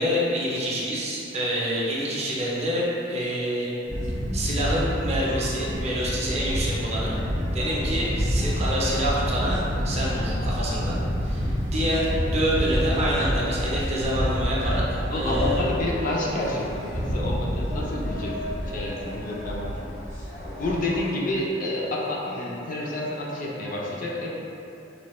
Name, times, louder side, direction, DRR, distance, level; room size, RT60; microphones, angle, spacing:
voice 1, 0.0-3.7 4.3-7.2 7.5-15.7, equal, 35° right, -6 dB, 0.5 m, -27 dB
sound 1, 3.9-21.1, equal, 85° left, 1.3 m, -28 dB
voice 2, 15.1-19.8 20.6-24.3, left 1 dB, 45° left, -4 dB, 0.4 m, -29 dB
3.1 x 2.2 x 2.9 m, 2.8 s
head